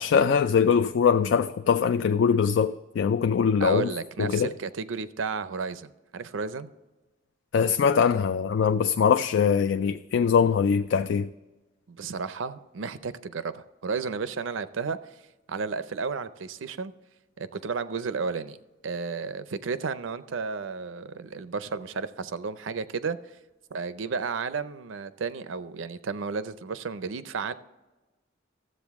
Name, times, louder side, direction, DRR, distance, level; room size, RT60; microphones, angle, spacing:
voice 1, 0.0-3.9 4.2-4.5 7.5-11.3, left 6 dB, 65° left, 0.3 m, -22 dB
voice 2, 3.6-6.7 11.9-15.0 15.5-16.9 17.4-18.6 18.8-23.2 23.7-27.5, right 5 dB, 85° right, 0.6 m, -32 dB
13.5 x 7.8 x 3.5 m
head